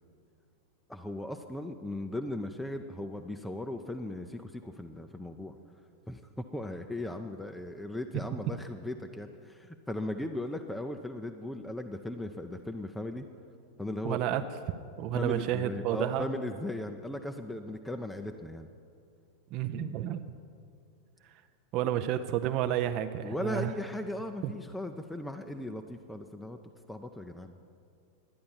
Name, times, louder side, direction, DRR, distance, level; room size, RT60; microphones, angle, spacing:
voice 1, 0.9-5.6 6.1-13.3 13.8-14.2 15.1-18.7 23.2-26.6 26.9-27.5, left 1 dB, 5° left, 5 dB, 0.5 m, -37 dB
voice 2, 14.0-14.4 15.0-16.3 19.5-20.2 21.7-23.7 24.4-24.5, right 12 dB, 40° right, 8 dB, 0.5 m, -30 dB
11.5 x 9.6 x 7.1 m, 2.3 s
figure-of-eight pair, 90°, 0 cm